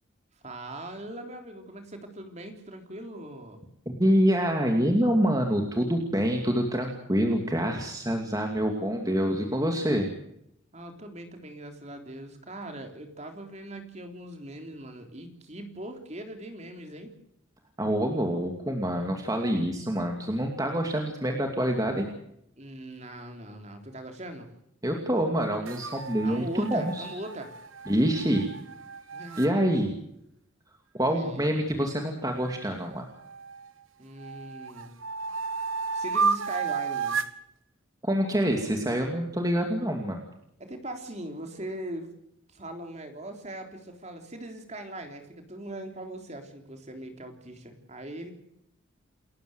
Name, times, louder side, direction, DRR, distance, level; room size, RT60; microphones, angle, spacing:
voice 1, 0.4-3.6 10.7-17.1 22.6-24.5 26.2-27.5 29.1-29.8 31.1-31.5 34.0-34.9 35.9-37.2 40.6-42.1 42.5-48.3, right 1 dB, 35° right, 5 dB, 3.6 m, -40 dB
voice 2, 4.0-10.1 17.8-22.1 24.8-27.1 27.9-28.5 29.4-30.0 30.9-33.1 38.0-40.2, equal, 20° right, 3 dB, 2.5 m, -26 dB
sound 1, 25.7-29.5 32.4-33.7 34.2-37.4, right 5 dB, 80° right, 1.3 m, -32 dB
29.0 x 14.5 x 8.1 m, 0.76 s
head